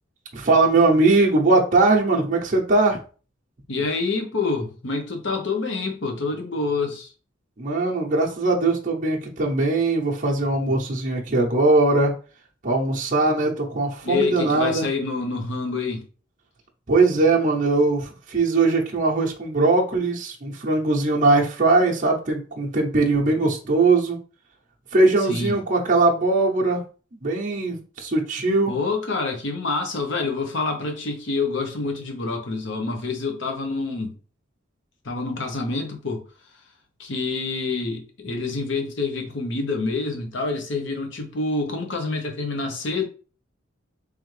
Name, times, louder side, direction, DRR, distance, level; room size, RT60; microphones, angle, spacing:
voice 1, 0.3-3.0 7.6-12.1 12.6-14.9 16.9-24.2 24.9-26.8 27.2-28.8, right 3 dB, 40° right, 0.7 m, -20 dB
voice 2, 3.7-7.1 14.0-16.0 25.3-25.6 28.7-34.1 35.0-36.2 37.0-43.0, left 3 dB, 65° left, 0.9 m, -27 dB
3.5 x 3.4 x 3.2 m
head